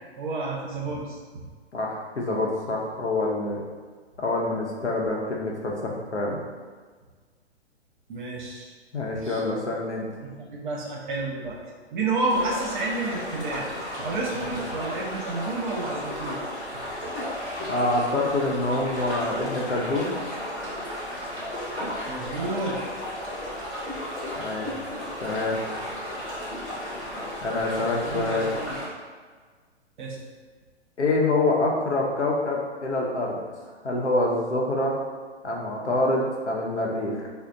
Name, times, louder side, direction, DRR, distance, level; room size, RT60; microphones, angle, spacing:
voice 1, 0.2-1.2 8.1-8.7 9.2-9.4 10.2-11.6 11.9-13.7 14.0-16.4 22.0-22.8 27.8-28.7 30.0-30.2, right 2 dB, 45° right, -2 dB, 0.7 m, -30 dB
voice 2, 1.7-3.6 4.2-6.4 8.9-10.1 17.7-20.1 24.4-24.7 25.2-25.6 27.4-28.5 31.0-33.4 33.8-35.0 35.4-37.2, left 2 dB, 85° left, -2 dB, 0.7 m, -26 dB
sound 1, 12.3-28.9, left 1 dB, 5° left, 0.3 m, -34 dB
4.0 x 2.1 x 2.5 m, 1.5 s
figure-of-eight pair, 115°, 34 cm